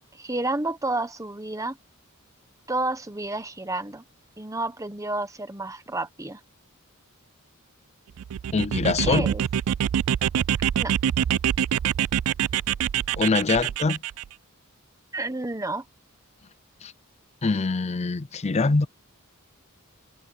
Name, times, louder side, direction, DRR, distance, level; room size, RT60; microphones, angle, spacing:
voice 1, 0.1-1.8 2.7-4.0 4.4-6.4 9.0-9.4 10.8-11.0 15.1-15.8, right 2 dB, 15° right, 1.2 m, -30 dB
sound 1, 8.2-14.2, right 9 dB, 75° right, 0.3 m, -25 dB
voice 2, 8.5-9.3 13.2-14.0 16.8-16.9 17.4-18.9, left 4 dB, 30° left, 0.5 m, -23 dB
head